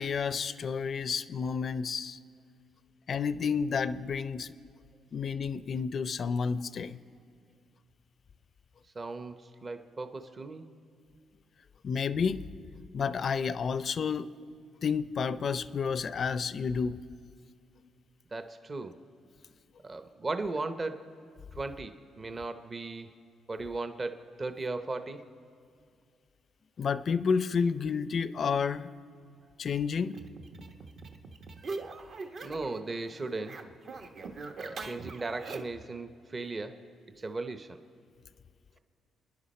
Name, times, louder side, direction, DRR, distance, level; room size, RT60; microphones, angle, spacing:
voice 1, 0.0-2.2 3.1-4.5 5.1-7.0 11.8-12.5 12.9-14.3 14.8-17.0 26.8-28.9 29.6-30.2, left 6 dB, 50° left, 15 dB, 0.5 m, -30 dB
voice 2, 8.9-10.7 18.3-19.0 19.8-21.1 21.5-23.2 23.5-25.2 32.4-33.6 34.6-36.8 37.2-37.8, right 3 dB, 30° right, 8 dB, 0.8 m, -37 dB
sound 1, 30.1-32.8 33.1-35.8, right 3 dB, 60° right, 1.1 m, -42 dB
28.5 x 10.0 x 4.3 m, 2.2 s
cardioid pair, 90°, 0 cm